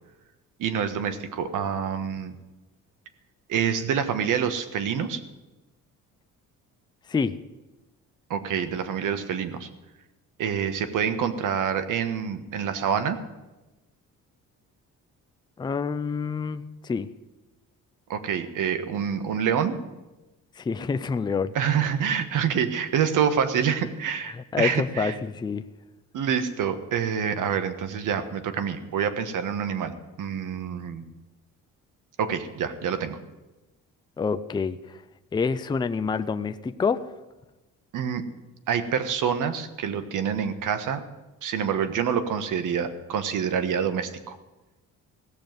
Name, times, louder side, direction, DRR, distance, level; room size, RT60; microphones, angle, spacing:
voice 1, 0.6-2.3 3.5-5.2 8.3-9.7 10.4-13.2 18.1-19.8 21.5-25.1 26.1-31.0 32.2-33.2 37.9-38.2 38.7-41.0 41.4-44.4, right 7 dB, 70° right, 10 dB, 1.3 m, -27 dB
voice 2, 15.6-17.1 20.6-21.5 24.3-25.7 34.2-35.0 35.3-37.1, left 5 dB, 15° left, 11 dB, 0.4 m, -27 dB
16.5 x 7.0 x 9.3 m, 1.1 s
cardioid pair, 145°, 32 cm